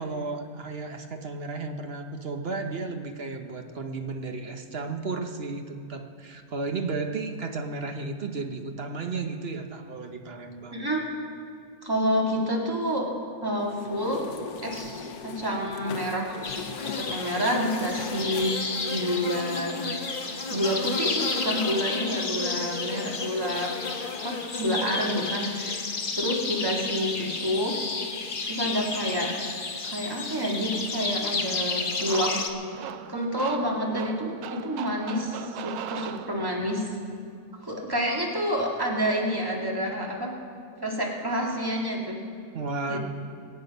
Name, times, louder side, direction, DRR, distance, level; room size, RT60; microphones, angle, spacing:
voice 1, 0.0-10.8 42.5-43.0, right 3 dB, 45° right, 5 dB, 1.0 m, -33 dB
voice 2, 10.7-11.0 11.8-13.1 13.4-14.2 14.6-16.4 17.0-18.6 18.9-19.8 20.5-23.7 24.2-25.7 26.1-27.8 28.5-29.3 29.8-32.5 33.1-36.9 37.6-40.3 40.8-42.2 42.9-43.0, equal, 15° right, -2 dB, 2.0 m, -28 dB
sound 1, 13.6-18.5, left 6 dB, 85° left, 1.3 m, -39 dB
sound 2, 16.4-32.5, left 4 dB, 40° left, 1.0 m, -31 dB
sound 3, 32.0-36.8, right 10 dB, 85° right, 1.1 m, -38 dB
23.0 x 8.6 x 5.4 m, 2.4 s
omnidirectional pair, 1.6 m